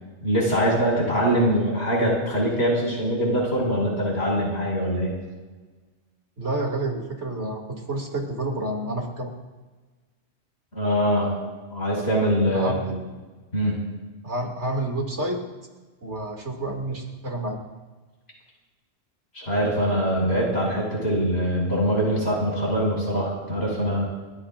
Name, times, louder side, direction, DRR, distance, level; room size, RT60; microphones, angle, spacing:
voice 1, 0.2-5.2 10.7-11.3 11.7-13.0 13.5-13.8 19.3-24.1, equal, 70° left, -3 dB, 6.4 m, -23 dB
voice 2, 6.4-9.3 12.5-12.9 14.2-15.4 16.0-17.6, right 1 dB, 80° right, 1 dB, 3.0 m, -29 dB
29.5 x 14.5 x 2.6 m, 1.3 s
omnidirectional pair, 1.1 m